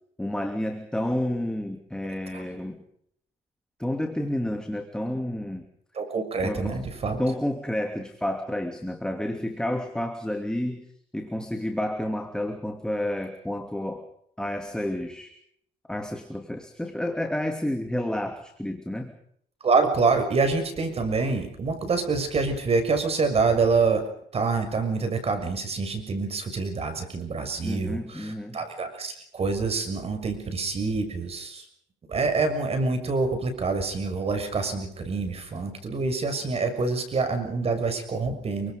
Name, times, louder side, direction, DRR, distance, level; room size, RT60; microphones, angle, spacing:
voice 1, 0.2-2.8 3.8-5.7 6.4-6.8 7.2-10.8 11.1-14.1 14.4-15.3 15.9-19.1 27.6-28.6, left 1 dB, 5° left, 5 dB, 2.8 m, -30 dB
voice 2, 5.9-7.2 19.6-24.0 24.3-31.6 32.1-38.7, right 4 dB, 35° right, 7 dB, 6.6 m, -26 dB
28.0 x 24.5 x 5.3 m, 0.68 s
cardioid pair, 110°, 17 cm